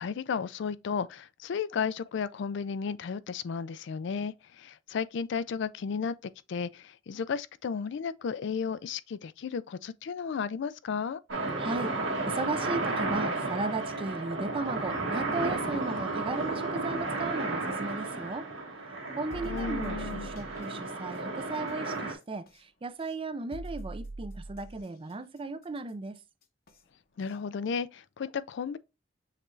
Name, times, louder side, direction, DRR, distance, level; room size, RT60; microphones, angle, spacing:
voice 1, 0.0-11.2 19.4-20.3 27.2-28.8, left 6 dB, 70° left, 0.4 m, -34 dB
sound 1, 11.3-22.1, right 2 dB, 80° right, 1.5 m, -33 dB
voice 2, 11.6-18.5 19.2-26.2, right 3 dB, 30° right, 0.4 m, -36 dB
sound 2, 19.3-20.6 22.5-22.6 23.5-24.9 26.7-26.8 27.3-27.4, right 2 dB, 55° left, 0.8 m, -41 dB
6.5 x 3.1 x 2.6 m
head